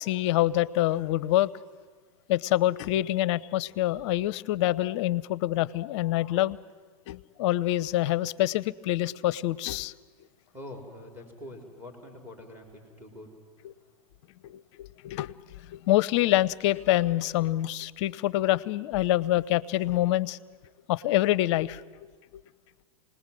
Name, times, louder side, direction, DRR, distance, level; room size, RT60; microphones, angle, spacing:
voice 1, 0.0-1.5 2.3-6.6 7.1-9.9 13.6-13.7 14.4-20.4 20.9-21.8 22.3-22.4, left 15 dB, 55° left, 21 dB, 0.7 m, -26 dB
voice 2, 10.5-13.3 13.8-13.9, left 1 dB, 10° right, 3 dB, 4.4 m, -45 dB
27.5 x 19.5 x 7.6 m, 1.5 s
hypercardioid pair, 115°, 18 cm